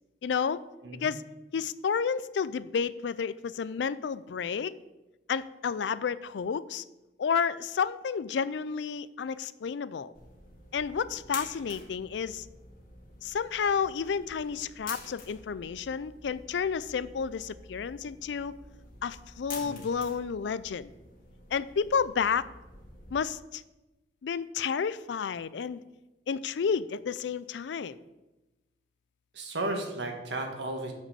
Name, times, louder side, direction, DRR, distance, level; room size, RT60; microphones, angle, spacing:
voice 1, 0.2-0.6 1.0-1.2 1.5-4.7 5.3-6.8 7.2-10.1 10.7-12.5 13.2-18.5 19.0-20.9 21.5-22.5 23.1-23.6 24.2-25.8 26.3-28.0, left 6 dB, 80° left, 16 dB, 0.4 m, -31 dB
sound 1, 10.1-23.2, left 3 dB, 55° left, 1.9 m, -48 dB
voice 2, 19.5-19.9 29.3-30.9, right 2 dB, 80° right, 3 dB, 1.5 m, -34 dB
6.6 x 6.0 x 6.9 m, 1.0 s
head